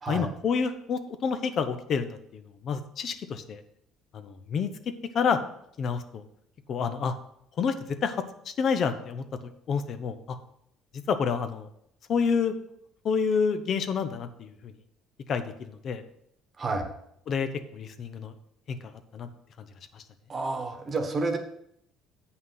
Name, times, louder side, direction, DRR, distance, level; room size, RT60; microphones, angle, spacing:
voice 1, 0.1-3.6 4.1-4.7 5.1-5.4 5.8-6.2 6.7-7.1 7.6-7.7 8.0-9.2 9.7-10.4 10.9-11.7 12.1-12.6 13.0-14.7 15.3-16.0 17.3-18.3 18.7-19.3 19.6-19.7 19.9-20.0, left 6 dB, 45° left, 9 dB, 0.6 m, -29 dB
voice 2, 16.6-16.9 20.3-21.4, right 3 dB, 30° right, 6 dB, 1.2 m, -29 dB
8.1 x 5.7 x 5.7 m, 0.74 s
cardioid pair, 125°, 0 cm